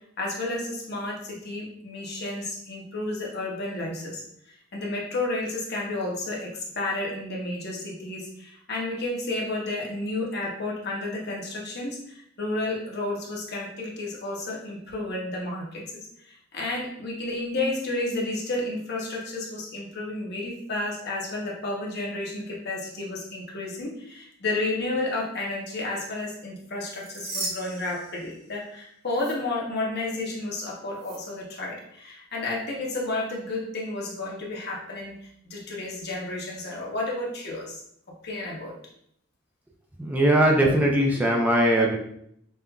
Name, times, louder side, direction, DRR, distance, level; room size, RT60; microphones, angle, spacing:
voice 1, 0.2-4.2 4.7-35.2 35.4-37.8 38.2-38.8, left 2 dB, 55° left, -2 dB, 0.9 m, -31 dB
sound 1, 26.7-28.7 29.1-29.3 31.0-31.2, right 2 dB, 55° right, 1.0 m, -37 dB
voice 2, 40.0-42.0, right 1 dB, 10° right, -1 dB, 0.4 m, -20 dB
5.4 x 2.5 x 2.3 m, 0.72 s
head